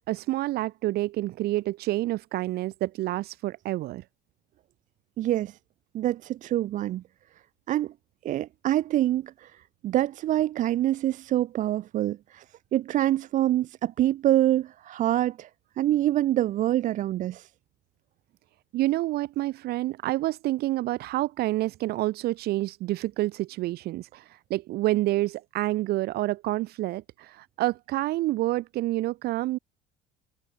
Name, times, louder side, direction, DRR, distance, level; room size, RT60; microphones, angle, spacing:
voice 1, 0.1-4.0 18.7-29.6, right 17 dB, 65° right, 1.1 m, -28 dB
voice 2, 5.2-5.6 5.9-7.0 7.7-7.9 8.2-12.4 12.7-15.5 15.8-17.5, right 13 dB, 45° right, 0.4 m, -25 dB
supercardioid pair, 100°, 18 cm